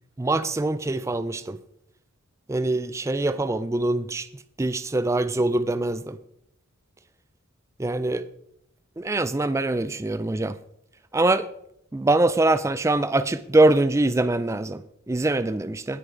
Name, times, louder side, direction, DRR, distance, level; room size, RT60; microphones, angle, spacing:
voice 1, 0.2-1.6 2.5-6.2 7.8-8.3 9.0-10.6 11.1-11.5 11.9-16.0, right 2 dB, 15° right, 0.3 m, -23 dB
19.0 x 6.6 x 3.8 m
head